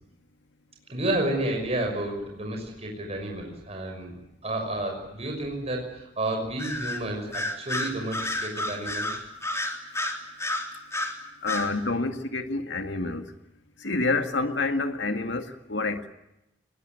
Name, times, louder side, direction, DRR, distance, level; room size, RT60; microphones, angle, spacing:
voice 1, 0.9-4.1 4.4-9.1, right 1 dB, 35° right, 1 dB, 6.1 m, -31 dB
Bird vocalization bird call bird song, 6.6-7.0 7.3-11.1 11.5-11.7, left 1 dB, 15° left, 3.6 m, -30 dB
voice 2, 11.4-13.2 13.8-16.1, left 3 dB, 70° left, 7 dB, 2.0 m, -28 dB
24.0 x 21.5 x 9.5 m, 0.90 s
head